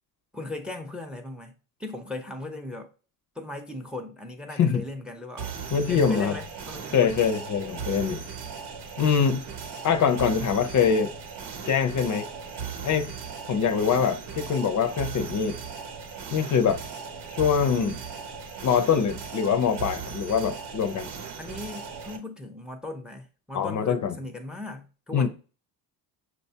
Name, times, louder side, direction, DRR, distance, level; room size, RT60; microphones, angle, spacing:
voice 1, 0.3-1.5 1.8-2.9 3.4-5.5 5.9-7.1 21.4-25.3, left 2 dB, ahead, 0.6 m, -38 dB
sound 1, 5.4-22.2, right 6 dB, 80° right, 0.8 m, -38 dB
voice 2, 5.7-6.3 6.9-8.2 9.0-9.4 9.8-11.1 11.7-12.3 12.8-13.1 13.5-15.6 16.3-16.8 17.4-18.0 18.6-21.1 23.5-24.1 25.1-25.3, left 7 dB, 50° left, 0.6 m, -23 dB
6.0 x 2.3 x 2.7 m
cardioid pair, 85°, 40 cm